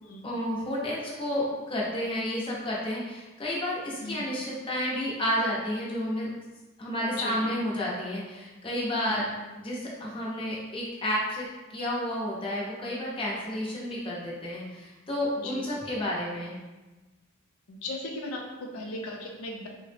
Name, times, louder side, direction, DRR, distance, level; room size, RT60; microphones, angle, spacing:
voice 1, 0.2-6.3 6.8-9.2 9.6-16.6, left 1 dB, 25° left, -5 dB, 0.6 m, -31 dB
voice 2, 7.1-7.5 9.0-9.3 15.4-15.6 17.7-19.7, left 2 dB, 85° left, 0 dB, 0.5 m, -37 dB
3.5 x 2.0 x 3.3 m, 1.2 s
head